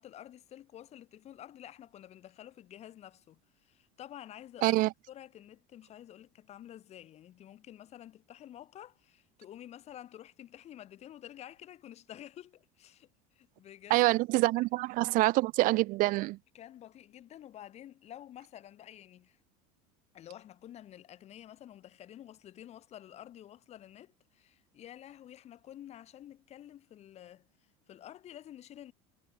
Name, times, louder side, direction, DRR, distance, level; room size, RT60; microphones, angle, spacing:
voice 1, 0.0-14.1 16.5-19.4 20.1-27.5 27.9-28.9, left 11 dB, 35° left, 5.2 m, -50 dB
voice 2, 13.9-16.4, right 20 dB, 50° right, 0.8 m, -26 dB
cardioid pair, 150°, 18 cm